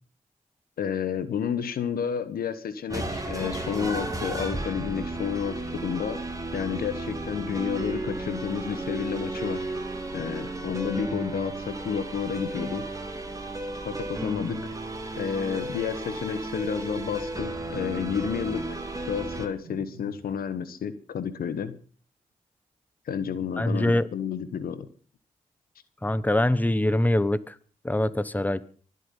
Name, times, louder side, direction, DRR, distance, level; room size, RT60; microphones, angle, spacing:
voice 1, 0.8-6.2 6.5-9.6 10.1-12.9 13.8-14.6 15.2-21.7 23.1-24.9, left 7 dB, 85° left, 13 dB, 1.1 m, -31 dB
sound 1, 2.9-19.5, right 2 dB, 25° right, 2.9 m, -34 dB
sound 2, 19.6-20.5 23.1-24.3, right 5 dB, 90° right, 1.8 m, -47 dB
voice 2, 23.6-24.1 26.0-27.5 27.8-28.6, left 1 dB, 10° left, 16 dB, 1.1 m, -24 dB
24.0 x 8.2 x 5.5 m, 0.43 s
supercardioid pair, 45°, 15 cm